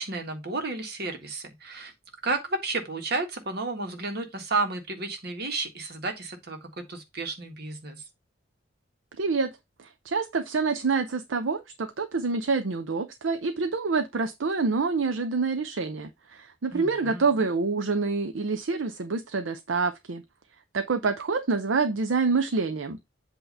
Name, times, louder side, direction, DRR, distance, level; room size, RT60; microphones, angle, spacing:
voice 1, 0.0-1.9 2.2-8.0 16.7-17.5, right 3 dB, 55° right, 1.7 m, -32 dB
voice 2, 9.2-9.5 9.8-20.2 20.7-23.0, right 4 dB, 90° right, 0.7 m, -27 dB
7.9 x 2.9 x 5.4 m
head